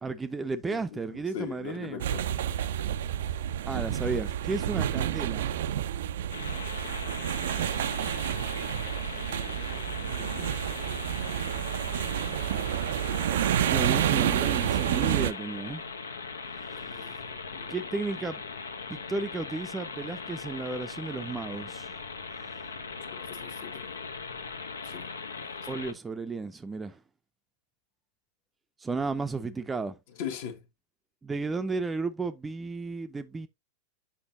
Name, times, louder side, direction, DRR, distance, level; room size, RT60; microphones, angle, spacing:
voice 1, 0.0-2.0 3.6-5.4 13.7-15.8 17.7-18.4 18.9-21.9 22.5-22.6 25.7-27.0 28.8-30.0 31.2-33.5, right 3 dB, 15° right, 0.6 m, -33 dB
voice 2, 0.7-2.2 9.5-10.6 13.0-13.2 13.6-13.8 16.7-17.7 23.0-23.9 24.8-25.5 30.2-30.6, left 7 dB, 55° left, 1.4 m, -42 dB
sound 1, 2.0-15.3, right 11 dB, 60° right, 0.4 m, -29 dB
sound 2, 6.3-25.9, left 4 dB, 75° left, 0.9 m, -39 dB
8.0 x 5.8 x 2.7 m
figure-of-eight pair, 90°, 0 cm